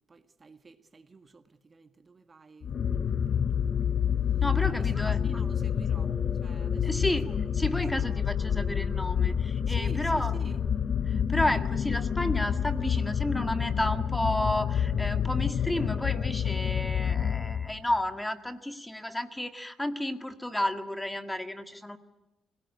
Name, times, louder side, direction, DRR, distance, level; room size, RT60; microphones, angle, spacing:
voice 1, 0.0-3.9 4.6-6.1 6.4-7.4 7.9-8.2 9.7-10.6, right 4 dB, 30° right, 1.7 m, -50 dB
sound 1, 2.6-18.0, left 8 dB, 55° left, 0.8 m, -28 dB
sound 2, 2.7-9.3, right 1 dB, 10° right, 1.3 m, -44 dB
voice 2, 4.4-5.2 6.8-7.3 7.5-10.3 11.1-22.0, left 1 dB, 10° left, 1.8 m, -31 dB
26.0 x 18.0 x 9.7 m
cardioid pair, 90°, 0 cm